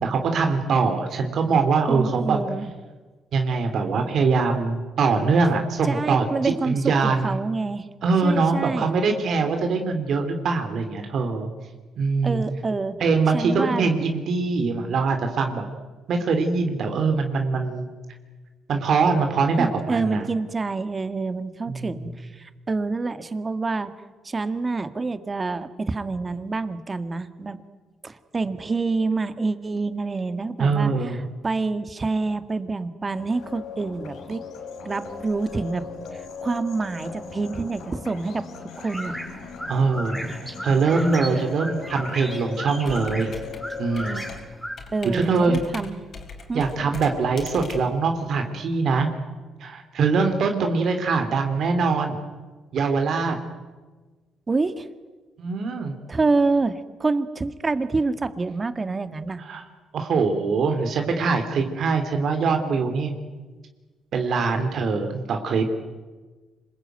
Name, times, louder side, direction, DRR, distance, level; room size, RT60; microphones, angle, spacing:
voice 1, 0.0-2.4 3.3-6.3 6.6-7.4 8.0-11.5 12.0-12.4 13.0-15.6 16.1-17.9 18.7-20.3 21.7-22.0 30.6-31.2 39.7-40.3 40.6-43.3 43.8-44.2 45.1-45.6 46.5-49.1 49.6-52.2 52.7-53.4 55.4-55.9 59.4-59.6 59.9-63.1 64.1-65.7, right 4 dB, 65° right, 5 dB, 3.0 m, -23 dB
voice 2, 1.9-2.7 5.9-7.9 8.2-9.0 12.2-13.0 13.3-13.9 19.6-23.9 24.2-27.6 28.0-34.4 34.9-35.9 36.1-38.4 38.8-39.1 44.9-46.0 46.5-46.7 54.5-54.9 56.1-59.4, right 3 dB, 30° right, 11 dB, 1.9 m, -27 dB
sound 1, 33.2-44.4, left 5 dB, 80° left, 4.2 m, -39 dB
sound 2, 38.8-44.8, equal, ahead, 4.3 m, -36 dB
Computer keyboard, 42.8-48.8, left 4 dB, 50° left, 4.8 m, -41 dB
26.5 x 21.0 x 9.2 m, 1.3 s
cardioid pair, 90°, 0 cm